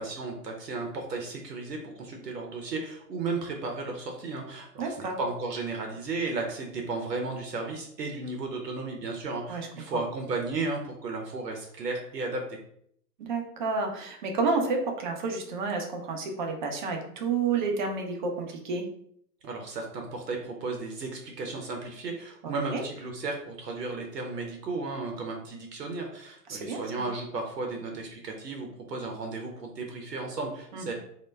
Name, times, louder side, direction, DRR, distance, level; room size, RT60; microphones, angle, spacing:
voice 1, 0.0-12.6 19.4-30.9, right 3 dB, 85° right, 2 dB, 0.6 m, -34 dB
voice 2, 4.8-5.2 9.5-9.7 9.9-10.0 13.2-18.8 22.4-22.8 26.5-27.1 30.7-30.9, right 4 dB, 35° right, 2 dB, 0.4 m, -30 dB
2.1 x 2.1 x 3.2 m, 0.68 s
figure-of-eight pair, 110°, 47 cm